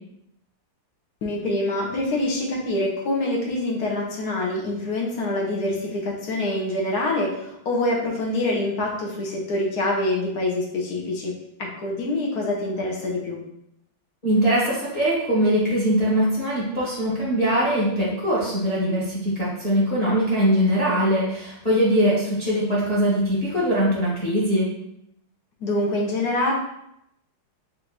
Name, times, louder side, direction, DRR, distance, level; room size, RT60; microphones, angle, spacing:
voice 1, 1.2-11.3 11.6-13.4 25.6-26.5, left 1 dB, 60° left, -2 dB, 1.1 m, -25 dB
voice 2, 14.2-24.7, equal, 25° left, -7 dB, 1.0 m, -22 dB
4.5 x 2.6 x 3.9 m, 0.78 s
omnidirectional pair, 2.3 m